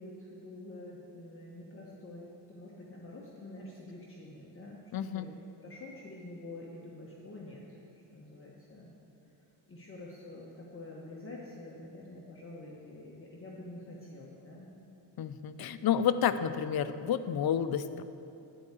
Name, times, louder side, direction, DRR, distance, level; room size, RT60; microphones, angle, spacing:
voice 1, 0.0-4.8 5.1-8.9 9.7-14.7, left 2 dB, 30° left, -4 dB, 1.2 m, -47 dB
voice 2, 4.9-5.3 15.2-18.0, left 9 dB, 55° left, 12 dB, 0.5 m, -30 dB
11.0 x 4.8 x 8.2 m, 2.8 s
cardioid pair, 120°, 44 cm